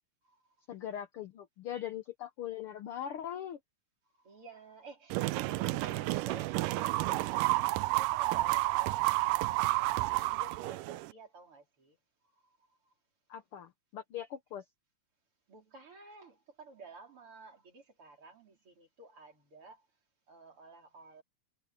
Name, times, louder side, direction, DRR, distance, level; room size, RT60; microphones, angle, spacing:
voice 1, 0.7-3.6 13.3-14.6, left 10 dB, 85° left, 1.2 m, -41 dB
voice 2, 4.2-7.5 7.7-12.0 15.5-19.8 20.3-21.2, right 4 dB, 40° right, 4.5 m, -52 dB
sound 1, 5.1-11.1, right 19 dB, 85° right, 2.2 m, -30 dB
omnidirectional pair, 3.8 m